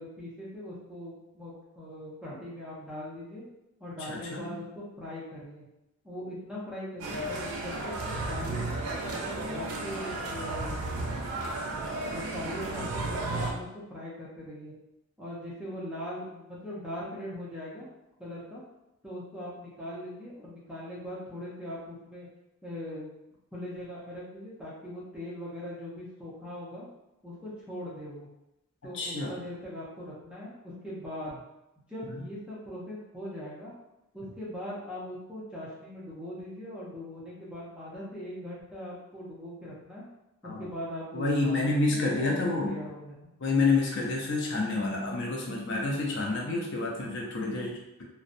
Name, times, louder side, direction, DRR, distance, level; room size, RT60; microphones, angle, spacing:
voice 1, 0.0-3.5 3.8-5.6 6.0-11.1 11.4-14.7 15.2-17.9 18.2-18.6 19.0-22.3 22.6-23.1 23.5-26.9 27.2-28.3 28.8-30.5 30.8-31.4 31.9-33.7 34.1-40.0 40.4-41.6 41.9-43.1, left 1 dB, 5° right, -7 dB, 0.5 m, -41 dB
voice 2, 4.1-4.6 28.9-29.3 40.4-40.7 41.1-42.8 43.4-48.0, left 3 dB, 55° left, -1 dB, 0.4 m, -28 dB
sound 1, 7.0-13.5, right 2 dB, 80° right, 0.4 m, -33 dB
2.6 x 2.1 x 2.5 m, 0.92 s
head